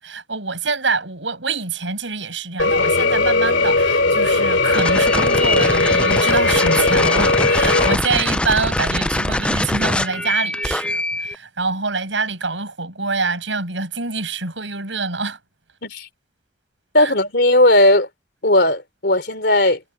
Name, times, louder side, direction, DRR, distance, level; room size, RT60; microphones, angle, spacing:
voice 1, 0.0-15.4 17.0-17.1, right 4 dB, 90° right, 6.5 m, -25 dB
sound 1, 2.6-8.0, left 3 dB, 80° left, 2.8 m, -18 dB
sound 2, 4.7-11.4, left 1 dB, 5° left, 0.5 m, -23 dB
voice 2, 16.9-18.1 18.4-19.8, left 1 dB, 60° left, 3.7 m, -16 dB
head